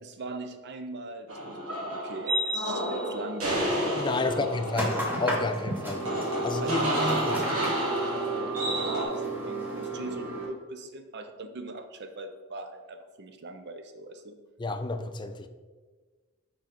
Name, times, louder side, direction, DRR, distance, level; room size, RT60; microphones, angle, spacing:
voice 1, 0.0-4.7 6.6-14.4, right 2 dB, 55° right, 7 dB, 0.6 m, -40 dB
sound 1, 1.3-9.0, equal, 70° right, 1.8 m, -31 dB
voice 2, 4.0-4.9 5.2-6.1 6.4-7.3 14.6-15.5, left 3 dB, 20° left, 8 dB, 0.4 m, -30 dB
sound 2, 4.7-10.5, right 2 dB, 10° right, 1.4 m, -32 dB
6.4 x 4.7 x 4.2 m, 1.4 s
head